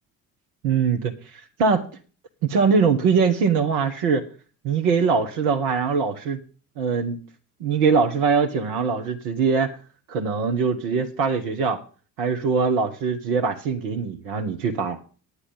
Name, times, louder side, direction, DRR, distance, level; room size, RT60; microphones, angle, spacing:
voice 1, 0.6-1.1 1.6-1.8 2.4-4.2 4.6-6.4 6.8-7.2 7.6-9.7 10.1-11.8 12.2-15.0, right 5 dB, 70° right, 5 dB, 1.4 m, -22 dB
10.0 x 10.0 x 5.5 m, 0.38 s
figure-of-eight pair, 50°, 47 cm